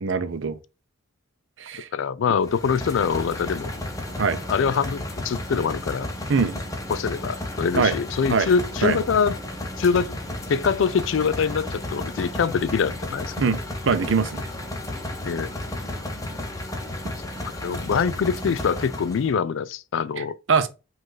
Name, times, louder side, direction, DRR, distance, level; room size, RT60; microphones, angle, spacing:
voice 1, 0.0-0.6 1.6-1.9 4.2-4.4 6.3-6.6 7.7-7.9 8.3-8.5 8.8-9.0 13.4-14.5 20.2-20.7, right 5 dB, 65° right, 0.6 m, -23 dB
voice 2, 1.9-3.7 4.5-6.1 6.9-9.4 9.8-10.2 10.5-13.3 15.2-15.5 17.6-20.4, left 6 dB, 65° left, 0.3 m, -24 dB
sound 1, 2.4-19.3, left 1 dB, 15° left, 0.7 m, -33 dB
5.2 x 2.5 x 3.8 m
head